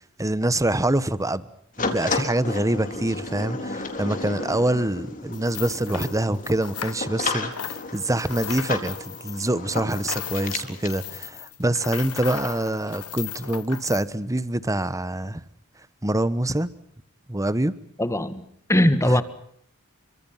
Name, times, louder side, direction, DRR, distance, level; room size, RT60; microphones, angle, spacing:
voice 1, 0.2-1.5 1.8-15.4 16.0-16.7 17.3-17.7 19.0-19.2, right 1 dB, 15° right, 1.2 m, -25 dB
sound 1, 1.8-11.0, left 3 dB, 40° left, 4.1 m, -33 dB
sound 2, 5.3-7.3 7.5-14.0, left 9 dB, 80° left, 1.4 m, -36 dB
voice 2, 18.0-18.4 18.7-19.2, left 1 dB, 15° left, 1.9 m, -20 dB
28.5 x 25.5 x 5.8 m
head